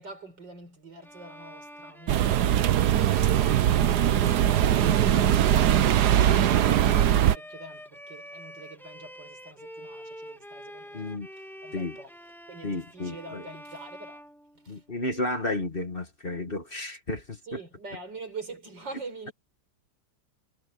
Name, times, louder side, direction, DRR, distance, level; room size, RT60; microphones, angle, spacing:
voice 1, 0.0-11.1 11.4-12.1 12.5-14.2 14.6-14.8 17.4-19.3, right 2 dB, 85° right, 6.1 m, -44 dB
Bowed string instrument, 1.0-15.1, equal, ahead, 2.0 m, -45 dB
sound 1, 2.1-7.4, right 11 dB, 70° right, 1.3 m, -21 dB
voice 2, 10.9-11.3 11.7-12.0 12.6-13.4 14.7-17.6, left 2 dB, 30° left, 1.9 m, -32 dB
omnidirectional pair, 1.9 m